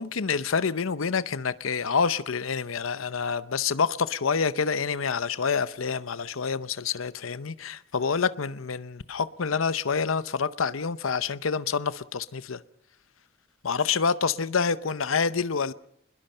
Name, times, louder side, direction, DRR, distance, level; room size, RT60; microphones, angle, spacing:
voice 1, 0.0-12.6 13.6-15.7, left 5 dB, 90° left, 0.7 m, -27 dB
26.5 x 21.0 x 5.5 m
head